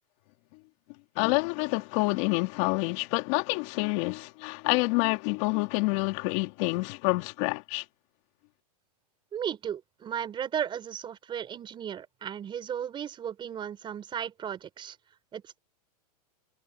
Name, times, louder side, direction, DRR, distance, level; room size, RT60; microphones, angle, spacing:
voice 1, 1.1-7.8, left 26 dB, 50° left, 3.3 m, -27 dB
voice 2, 9.3-15.0 15.3-15.6, right 9 dB, 25° right, 5.4 m, -35 dB
hypercardioid pair, 130°, 20 cm